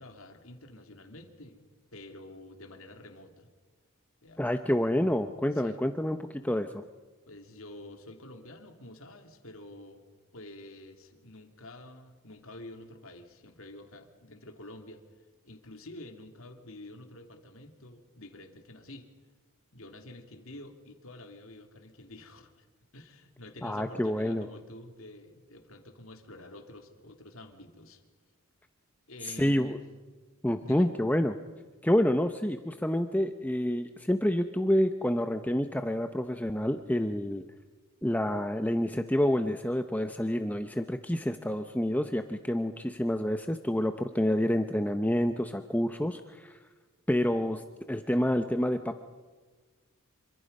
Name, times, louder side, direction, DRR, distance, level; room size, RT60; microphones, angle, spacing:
voice 1, 0.0-1.6 1.9-3.5 4.2-4.5 5.5-5.8 7.3-10.0 10.3-15.0 15.4-19.1 19.7-22.7 22.9-28.0 29.1-29.8 30.6-30.9, left 1 dB, 65° left, 5 dB, 2.7 m, -48 dB
voice 2, 4.4-6.8 23.6-24.5 29.2-29.8 30.4-31.4 31.8-37.4 38.0-46.6 47.1-49.0, equal, 5° left, 7 dB, 0.7 m, -28 dB
27.5 x 25.0 x 5.4 m, 1.4 s
head